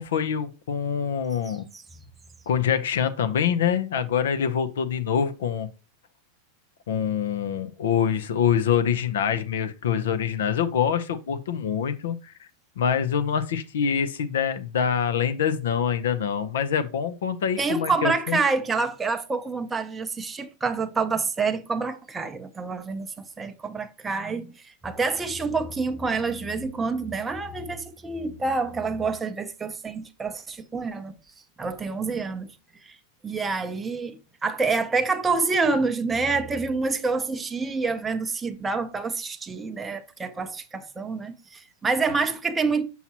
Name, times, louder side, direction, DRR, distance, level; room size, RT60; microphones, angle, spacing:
voice 1, 0.0-1.7 2.5-5.7 6.9-12.5 12.8-18.4, left 8 dB, 90° left, 0.6 m, -25 dB
voice 2, 1.5-1.8 17.6-31.1 31.6-32.5 32.8-33.0 33.2-42.8, right 4 dB, 10° right, 0.5 m, -27 dB
6.0 x 5.6 x 2.9 m
supercardioid pair, 150°, 0 cm